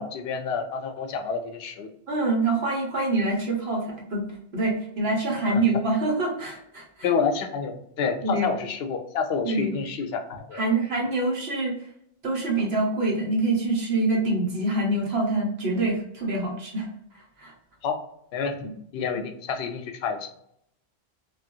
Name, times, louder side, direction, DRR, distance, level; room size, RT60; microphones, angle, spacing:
voice 1, 0.0-1.9 5.5-5.6 7.0-10.6 17.8-18.0 18.3-20.3, left 5 dB, 75° left, 5 dB, 0.8 m, -29 dB
voice 2, 2.1-4.2 4.5-7.1 8.2-8.5 9.4-9.8 10.5-11.7 12.2-16.9 17.4-17.5 18.6-18.8, right 2 dB, 70° right, -1 dB, 1.3 m, -25 dB
3.2 x 2.5 x 2.6 m, 0.71 s
omnidirectional pair, 1.1 m